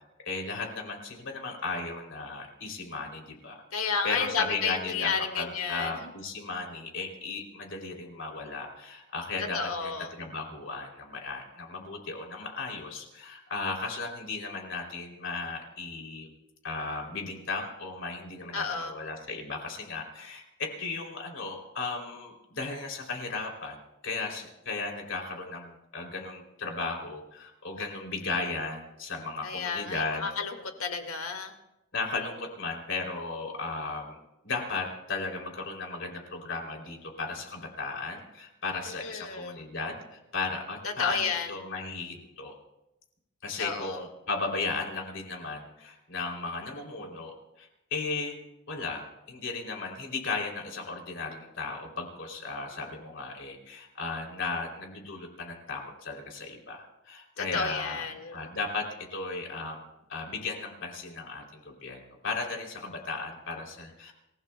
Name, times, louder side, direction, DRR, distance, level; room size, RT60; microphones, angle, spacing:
voice 1, 0.2-3.6 4.0-9.9 10.2-16.3 16.6-30.3 31.9-34.2 34.4-42.5 43.4-48.4 48.7-58.0 58.3-59.8 60.1-64.1, left 3 dB, 60° left, 1 dB, 3.1 m, -35 dB
voice 2, 3.7-6.1 9.4-10.1 18.5-18.9 29.4-31.5 38.9-39.6 40.8-41.5 43.6-44.0 57.4-58.5, left 5 dB, 85° left, 5 dB, 1.9 m, -32 dB
27.5 x 16.0 x 2.3 m, 0.91 s
head